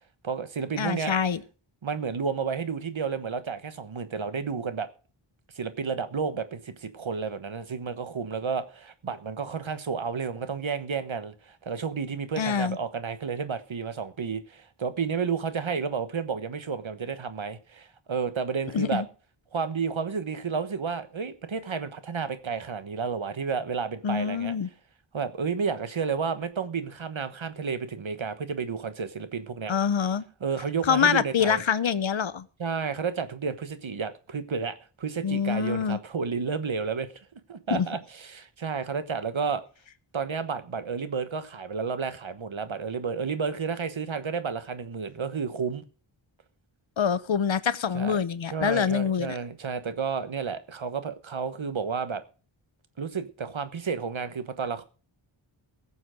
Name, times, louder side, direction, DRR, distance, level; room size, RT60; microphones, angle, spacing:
voice 1, 0.2-1.1 1.8-4.9 5.5-19.0 19.5-24.5 25.1-29.7 30.4-31.6 32.6-37.1 37.5-39.6 40.1-45.8 47.9-48.2 48.5-52.2 53.0-54.8, right 5 dB, 70° right, 1.3 m, -31 dB
voice 2, 0.8-1.4 12.4-12.8 18.7-19.0 24.0-24.7 29.7-30.2 30.8-32.4 35.2-36.0 37.7-37.9 47.0-49.3, left 7 dB, 65° left, 0.8 m, -25 dB
17.5 x 7.1 x 5.0 m
wide cardioid pair, 55°, 49 cm